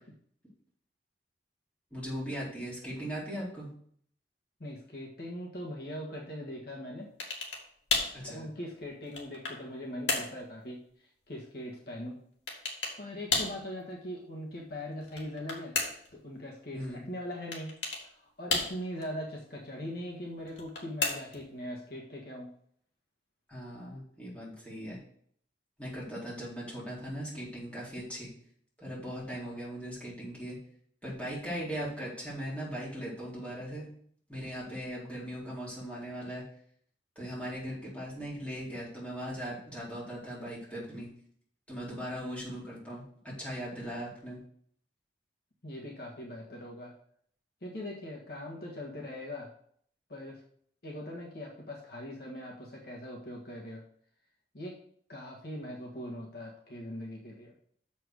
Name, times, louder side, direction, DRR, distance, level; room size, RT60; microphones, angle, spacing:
voice 1, 1.9-3.7 8.1-8.5 16.7-17.1 23.5-25.0 25.8-28.3 28.8-30.6 31.0-33.9 34.3-36.4 37.2-41.1 41.7-44.4, equal, 5° left, -7 dB, 3.8 m, -39 dB
voice 2, 4.6-7.1 8.3-10.8 11.3-12.2 13.0-15.8 16.1-17.7 18.4-22.5 45.6-46.9 47.6-49.5 50.1-50.4 50.8-53.8 54.5-54.8 55.1-57.5, left 1 dB, 60° left, -2 dB, 1.6 m, -41 dB
sound 1, 7.2-7.6 7.9-8.2 8.8-9.6 10.1-10.4 12.5-13.0 13.3-13.6 15.0-16.1 17.5-18.0 18.5-19.0 20.5-21.4, left 4 dB, 85° left, 2.2 m, -32 dB
6.7 x 6.1 x 6.4 m, 0.62 s
head